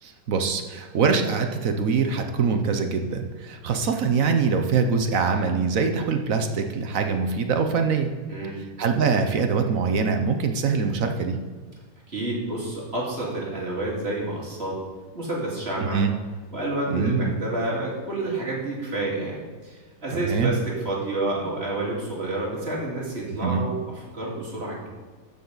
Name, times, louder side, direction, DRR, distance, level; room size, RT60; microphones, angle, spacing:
voice 1, 0.0-8.1 8.8-11.4 15.9-16.1 16.9-17.3 20.1-20.6 23.4-23.6, right 5 dB, 60° right, 6 dB, 1.1 m, -23 dB
voice 2, 8.2-8.6 12.1-14.8 15.1-16.0 16.5-24.9, right 2 dB, 40° right, -4 dB, 2.5 m, -29 dB
13.0 x 7.0 x 4.0 m, 1.4 s
omnidirectional pair, 1.8 m